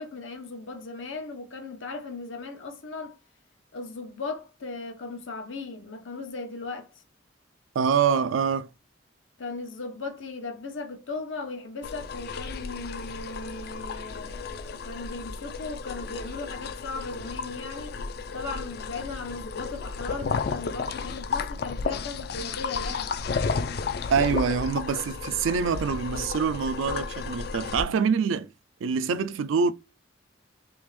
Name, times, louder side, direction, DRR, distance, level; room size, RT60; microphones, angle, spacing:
voice 1, 0.0-3.1 3.7-6.9 9.4-18.0 18.3-23.1, left 3 dB, 80° left, 0.9 m, -37 dB
voice 2, 7.8-8.7 24.1-28.5 28.8-29.7, right 6 dB, 80° right, 0.3 m, -25 dB
sound 1, 11.8-27.8, left 4 dB, 50° left, 0.3 m, -33 dB
3.5 x 2.9 x 3.1 m
head